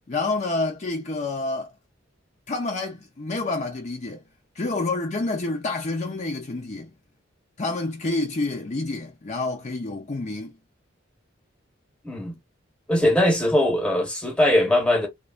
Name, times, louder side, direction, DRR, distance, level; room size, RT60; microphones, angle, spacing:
voice 1, 0.1-1.7 2.5-4.2 4.6-6.9 7.6-10.5, left 2 dB, 35° left, 0.5 m, -28 dB
voice 2, 12.9-15.1, left 1 dB, 5° left, 1.0 m, -20 dB
3.1 x 2.2 x 2.3 m
head